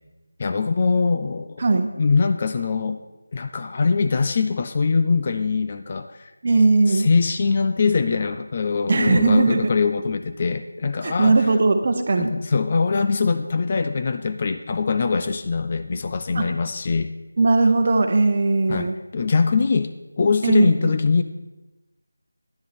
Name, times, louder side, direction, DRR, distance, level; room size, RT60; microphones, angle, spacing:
voice 1, 0.4-1.6 2.0-3.0 3.3-6.3 6.9-11.4 12.2-17.1 18.7-21.2, left 4 dB, 25° left, 8 dB, 0.4 m, -22 dB
voice 2, 6.4-7.1 8.9-9.7 11.0-12.3 16.3-16.5 17.4-18.9 20.4-20.9, right 3 dB, 35° right, 6 dB, 0.9 m, -18 dB
10.5 x 10.0 x 4.2 m, 1.1 s
figure-of-eight pair, 175°, 0 cm